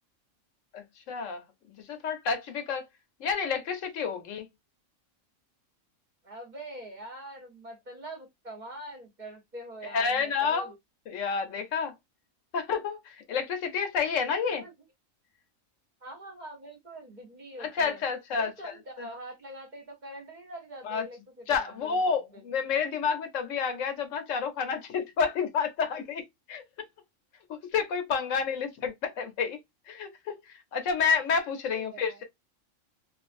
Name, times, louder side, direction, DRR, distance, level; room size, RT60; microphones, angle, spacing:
voice 1, 0.7-1.4 1.8-2.9 3.2-4.4 9.8-10.7 11.1-11.9 12.5-14.6 17.6-18.7 19.0-19.1 20.8-21.0 21.5-26.2 26.5-26.6 27.5-29.6 29.9-32.2, left 6 dB, 75° left, 1.0 m, -29 dB
voice 2, 6.2-10.7 14.5-14.7 16.0-18.0 18.3-22.5 31.5-32.2, right 1 dB, 40° right, 0.8 m, -44 dB
2.5 x 2.4 x 2.4 m
omnidirectional pair, 1.4 m